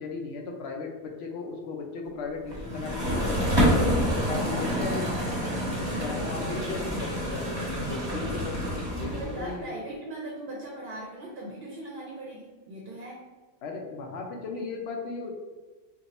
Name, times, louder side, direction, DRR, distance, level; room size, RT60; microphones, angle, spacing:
voice 1, 0.0-3.4 3.7-5.3 6.0-9.7 13.6-15.3, left 4 dB, 65° left, 1 dB, 0.8 m, -36 dB
sound 1, 2.5-9.5, equal, 25° right, 0.9 m, -28 dB
voice 2, 4.3-5.0 5.9-6.9 9.1-13.3, right 1 dB, 55° right, -2 dB, 0.7 m, -39 dB
2.7 x 2.3 x 4.0 m, 1.3 s
omnidirectional pair, 1.3 m